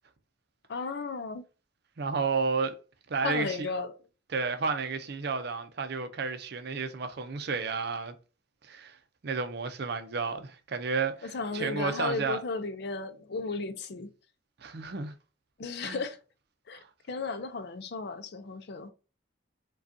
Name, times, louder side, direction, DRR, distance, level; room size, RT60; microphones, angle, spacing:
voice 1, 0.7-1.4 3.2-3.9 11.3-14.1 15.6-16.2 16.7-16.8 17.1-18.9, left 4 dB, 60° left, 0.5 m, -34 dB
voice 2, 2.0-2.7 3.1-3.7 4.3-8.1 8.6-9.0 9.2-12.4 14.6-15.1 15.8-16.0 16.7-16.9, right 4 dB, 60° right, 0.5 m, -32 dB
5.0 x 2.3 x 2.6 m
head